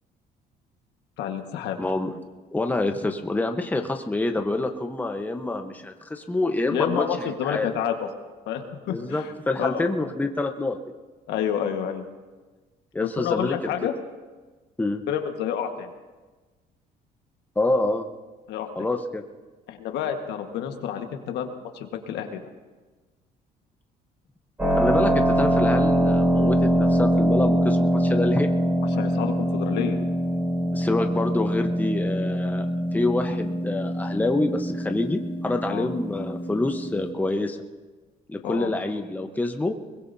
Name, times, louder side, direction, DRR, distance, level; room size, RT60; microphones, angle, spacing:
voice 1, 1.2-1.8 6.7-8.1 8.5-9.3 9.6-9.8 11.3-12.0 13.0-13.9 15.1-15.9 18.5-18.9 19.7-22.5 28.9-30.0 35.7-35.9 38.4-38.7, left 9 dB, 85° left, 5 dB, 1.6 m, -29 dB
voice 2, 1.8-2.1 2.5-7.7 8.9-10.8 12.9-13.7 14.8-15.0 17.6-18.0 18.7-19.2 24.7-28.5 30.7-37.6 38.3-39.7, left 2 dB, 10° left, 5 dB, 1.1 m, -27 dB
Keyboard (musical), 24.6-37.1, equal, 10° right, 5.5 m, -23 dB
22.0 x 21.0 x 2.8 m, 1.3 s
cardioid pair, 110°, 17 cm